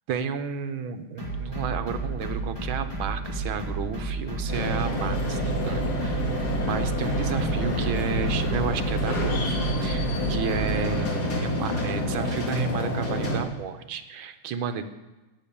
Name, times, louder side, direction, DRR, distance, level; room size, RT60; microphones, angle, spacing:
voice 1, 0.1-6.3 6.6-14.8, right 6 dB, 75° right, 9 dB, 1.8 m, -32 dB
sound 1, 1.2-10.8, right 3 dB, 10° left, 4.2 m, -32 dB
sound 2, 4.5-13.4, equal, 50° left, 2.8 m, -28 dB
12.5 x 8.8 x 8.5 m, 1.1 s
omnidirectional pair, 2.3 m